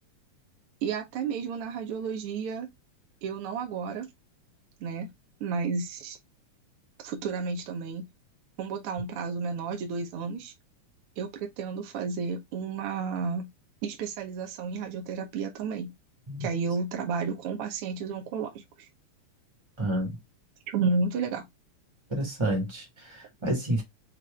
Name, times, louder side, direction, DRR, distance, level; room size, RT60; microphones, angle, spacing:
voice 1, 0.8-2.7 3.2-4.1 4.8-5.1 5.4-6.2 7.0-8.1 8.6-10.5 11.2-13.5 13.8-15.9 16.4-18.5 20.7-21.5, right 5 dB, 65° right, 1.5 m, -31 dB
voice 2, 19.8-20.2 22.1-23.8, right 1 dB, 15° right, 0.9 m, -29 dB
5.9 x 2.6 x 3.4 m
omnidirectional pair, 3.4 m